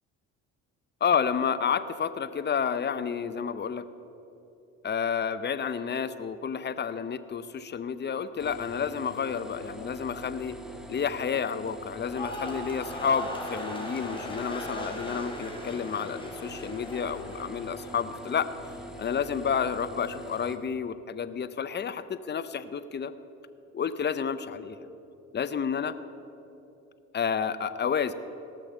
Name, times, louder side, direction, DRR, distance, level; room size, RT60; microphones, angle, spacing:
voice 1, 1.0-3.9 4.8-10.6 10.9-18.5 19.0-23.1 23.7-24.8 25.3-25.9 27.1-28.1, left 7 dB, 30° left, 13 dB, 0.7 m, -30 dB
sound 1, 8.4-20.6, right 1 dB, ahead, 1.5 m, -43 dB
sound 2, 12.0-18.3 18.6-19.1, left 1 dB, 15° left, 3.2 m, -39 dB
17.5 x 6.6 x 6.4 m, 2.9 s
hypercardioid pair, 65°, 36 cm